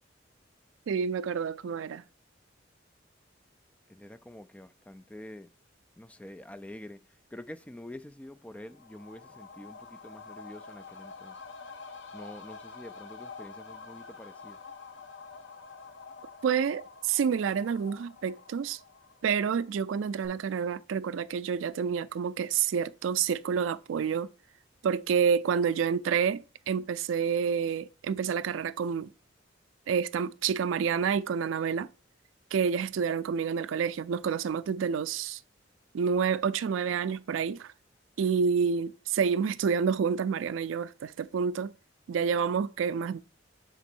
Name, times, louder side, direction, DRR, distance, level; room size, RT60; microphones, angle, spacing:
voice 1, 0.9-2.0 16.4-18.8 19.2-24.3 24.8-29.1 29.9-31.9 32.5-35.4 35.9-37.7 38.2-41.7 42.1-43.2, right 6 dB, 90° right, 0.3 m, -28 dB
voice 2, 3.9-5.5 6.0-7.0 7.3-11.4 12.1-14.6, left 1 dB, 5° left, 0.3 m, -46 dB
sound 1, 8.5-19.9 20.2-20.3, left 4 dB, 65° left, 0.7 m, -48 dB
6.0 x 4.0 x 4.4 m
head